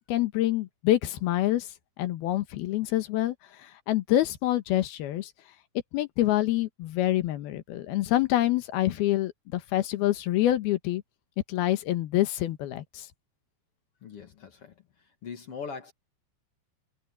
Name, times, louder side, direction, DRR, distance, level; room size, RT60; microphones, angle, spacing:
voice 1, 0.1-1.7 2.0-3.4 3.9-5.3 5.9-11.0 11.5-13.1, left 14 dB, 70° left, 2.8 m, -26 dB
voice 2, 14.0-15.9, left 6 dB, 50° left, 1.8 m, -41 dB
omnidirectional pair, 5.1 m